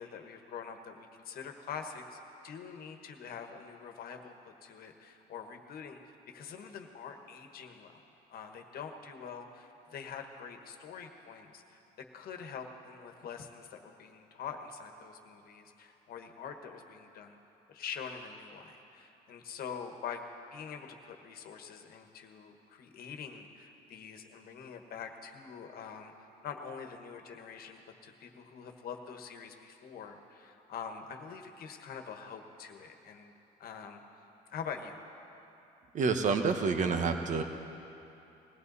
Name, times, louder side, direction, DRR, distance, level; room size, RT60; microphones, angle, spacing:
voice 1, 0.0-8.0 8.3-11.8 12.1-17.4 17.7-20.2 20.5-26.1 26.4-33.3 33.6-34.0 34.5-35.0, left 6 dB, 60° left, 4 dB, 1.4 m, -45 dB
voice 2, 35.9-37.4, right 5 dB, 45° right, 6 dB, 1.2 m, -28 dB
20.5 x 16.0 x 4.1 m, 2.9 s
cardioid pair, 110°, 17 cm